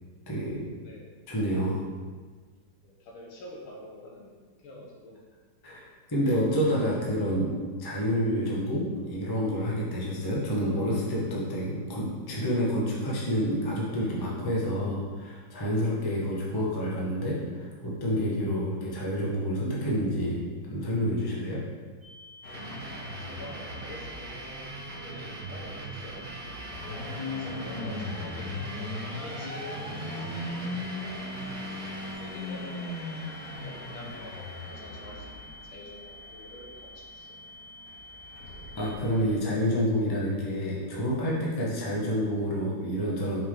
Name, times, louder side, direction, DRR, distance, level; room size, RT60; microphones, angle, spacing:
voice 1, 0.3-0.6 1.3-1.8 5.6-7.5 7.8-20.4 20.7-21.6 38.7-43.4, equal, 15° left, -5 dB, 0.7 m, -28 dB
voice 2, 0.8-1.1 2.8-5.2 23.0-26.6 27.3-31.2 31.6-31.8 32.2-32.8 33.6-37.3, left 1 dB, 75° left, -2 dB, 1.8 m, -47 dB
sound 1, 22.0-39.0, left 1 dB, 25° right, 1.0 m, -48 dB
sound 2, 22.4-39.4, left 2 dB, 50° left, 1.5 m, -39 dB
sound 3, 22.5-32.1, right 3 dB, 70° right, 0.8 m, -42 dB
5.7 x 5.0 x 3.7 m, 1.5 s
omnidirectional pair, 2.3 m